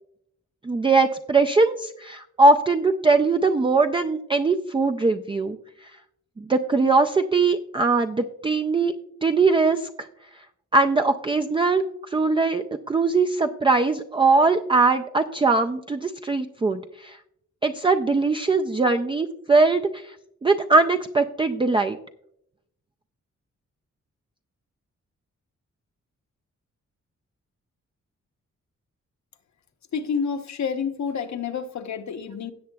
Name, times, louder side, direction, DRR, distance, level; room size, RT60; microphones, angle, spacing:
voice 1, 0.6-5.9 6.4-8.9 9.2-10.1 10.7-17.2 17.6-20.2 20.4-22.0, right 3 dB, 20° right, 5 dB, 0.3 m, -21 dB
voice 2, 29.9-32.5, left 6 dB, 70° left, 8 dB, 0.9 m, -29 dB
17.0 x 7.5 x 2.3 m, 0.74 s
wide cardioid pair, 155°, 30 cm